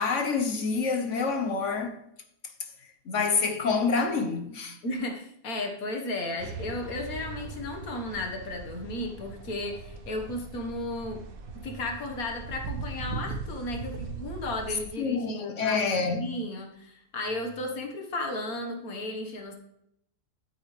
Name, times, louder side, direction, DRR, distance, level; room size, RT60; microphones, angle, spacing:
voice 1, 0.0-2.1 3.1-4.8 15.0-16.4, left 4 dB, 60° left, 1.3 m, -27 dB
voice 2, 4.8-11.2 11.5-19.5, left 2 dB, 85° left, 2.0 m, -34 dB
sound 1, 6.4-14.8, right 4 dB, 80° right, 1.6 m, -39 dB
13.0 x 8.7 x 3.3 m
omnidirectional pair, 1.5 m